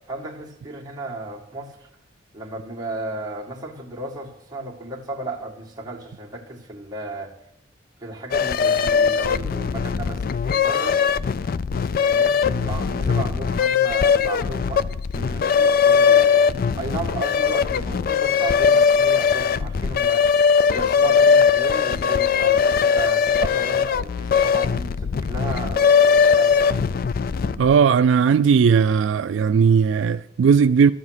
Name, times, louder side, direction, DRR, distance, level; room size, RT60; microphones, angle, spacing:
voice 1, 0.1-1.9 2.3-7.3 8.0-11.0 11.7-16.5 16.8-20.2 20.7-26.7, right 2 dB, 20° right, 1.7 m, -34 dB
sound 1, 8.3-27.7, left 6 dB, 50° left, 0.4 m, -20 dB
voice 2, 27.6-30.9, right 6 dB, 75° right, 0.3 m, -17 dB
13.0 x 7.6 x 6.3 m
head